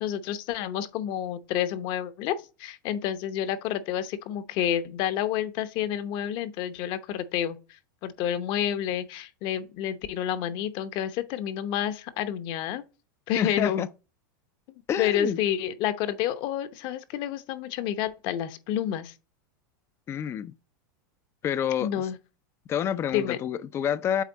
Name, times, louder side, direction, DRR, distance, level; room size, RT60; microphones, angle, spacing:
voice 1, 0.0-12.8 13.3-13.8 15.0-19.1 21.8-22.2 23.1-23.4, left 10 dB, 50° left, 0.9 m, -29 dB
voice 2, 13.4-13.9 14.9-15.4 20.1-20.5 21.4-21.9 22.7-24.2, left 9 dB, 25° left, 0.5 m, -28 dB
8.2 x 3.6 x 4.0 m
supercardioid pair, 140°, 11 cm